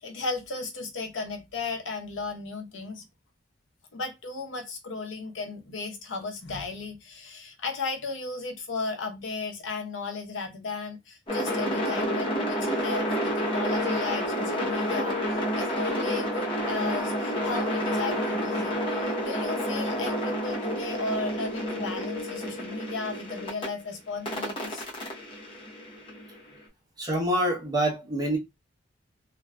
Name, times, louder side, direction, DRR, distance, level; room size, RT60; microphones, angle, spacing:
voice 1, 0.0-3.0 3.9-15.2 15.6-24.8, left 3 dB, 90° left, 0.7 m, -35 dB
sound 1, 11.3-23.7 24.3-26.4, equal, 30° left, 0.8 m, -29 dB
voice 2, 27.0-28.4, right 1 dB, 20° right, 0.8 m, -26 dB
2.6 x 2.2 x 2.2 m
head